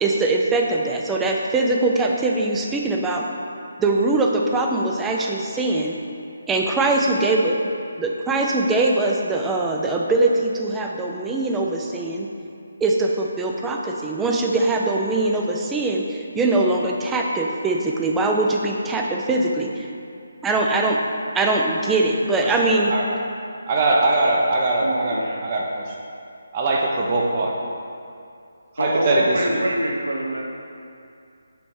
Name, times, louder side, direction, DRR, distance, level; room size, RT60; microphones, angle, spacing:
voice 1, 0.0-3.2 3.8-6.0 6.5-7.6 8.0-12.3 12.8-19.9 20.4-21.0 21.3-22.9, right 2 dB, 10° right, 0 dB, 0.4 m, -22 dB
voice 2, 23.7-26.0 26.5-27.5 28.8-29.5, right 2 dB, 35° right, -1 dB, 0.8 m, -21 dB
voice 3, 24.7-25.4 28.8-30.4, right 1 dB, 90° right, -1 dB, 0.9 m, -25 dB
6.8 x 3.2 x 4.8 m, 2.5 s
figure-of-eight pair, 150°, 0 cm